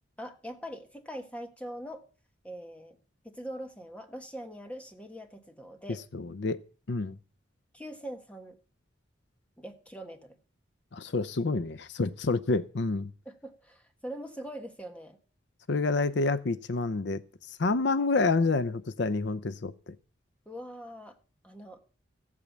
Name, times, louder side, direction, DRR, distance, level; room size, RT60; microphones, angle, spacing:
voice 1, 0.2-2.0 2.4-3.0 3.2-6.0 7.7-8.6 9.6-10.4 13.2-15.2 20.4-21.2 21.4-21.8, equal, 5° left, 1.5 m, -42 dB
voice 2, 6.1-6.6 6.9-7.2 10.9-13.1 15.7-19.9, left 3 dB, 60° left, 0.6 m, -28 dB
15.0 x 8.4 x 7.3 m
head